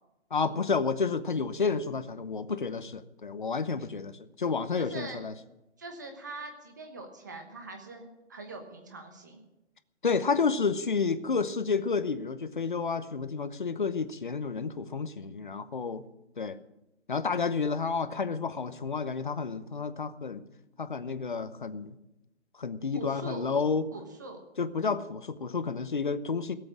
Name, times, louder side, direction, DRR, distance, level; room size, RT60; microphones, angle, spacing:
voice 1, 0.3-5.3 10.0-16.1 16.4-16.6 17.1-20.4 20.8-22.0 22.6-23.9 24.6-26.6, left 5 dB, 45° left, 12 dB, 0.9 m, -30 dB
voice 2, 4.8-5.2 5.8-9.4 22.9-23.5 23.9-24.4, right 2 dB, 15° right, 4 dB, 1.1 m, -42 dB
17.0 x 7.9 x 8.6 m, 0.93 s
hypercardioid pair, 175°, 35 cm